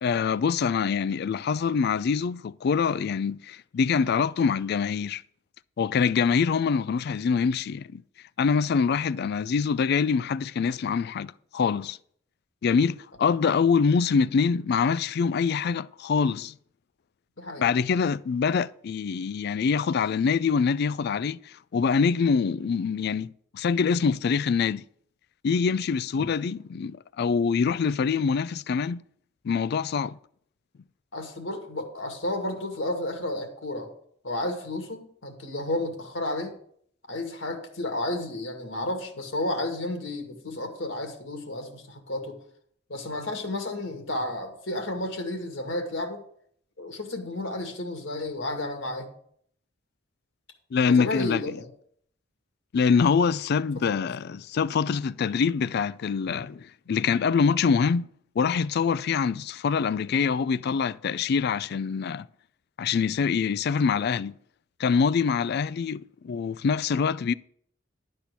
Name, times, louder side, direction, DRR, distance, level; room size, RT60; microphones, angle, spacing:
voice 1, 0.0-5.2 5.8-8.0 8.4-12.0 12.6-16.5 17.6-24.8 25.4-29.0 29.4-30.2 50.7-51.4 52.7-58.1 58.4-62.3 62.8-64.3 64.8-67.3, left 5 dB, 55° left, 0.3 m, -25 dB
voice 2, 17.4-17.7 31.1-33.9 34.2-36.6 37.1-42.4 42.9-46.2 46.8-49.1 50.9-51.7 53.8-54.0 56.2-56.4, left 1 dB, 70° left, 2.1 m, -32 dB
11.5 x 4.4 x 8.1 m
head